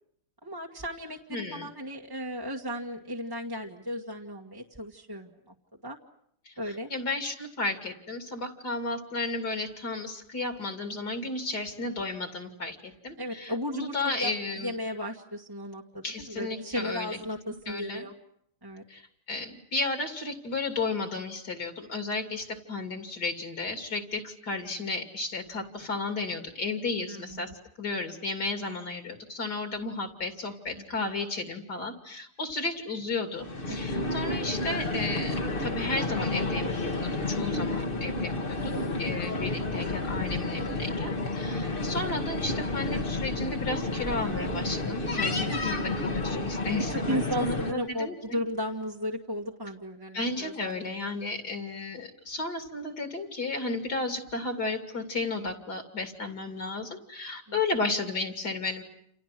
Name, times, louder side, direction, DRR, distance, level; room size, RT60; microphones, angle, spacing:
voice 1, 0.4-5.5 5.8-6.0 6.6-6.9 13.2-14.3 14.6-18.1 18.6-18.8 27.1-27.5 30.7-30.8 33.7-33.9 45.5-45.6 46.9-51.1 57.5-57.6, equal, 10° right, 0 dB, 1.6 m, -35 dB
voice 2, 1.3-1.7 6.5-6.6 6.9-14.8 16.0-17.2 17.7-18.1 18.9-19.0 19.3-27.5 27.8-38.7 39.0-48.4 50.1-58.8, left 3 dB, 45° left, 5 dB, 3.5 m, -33 dB
sound 1, 33.4-47.7, left 2 dB, 25° left, 1.6 m, -30 dB
29.5 x 29.0 x 6.1 m, 0.72 s
omnidirectional pair, 2.4 m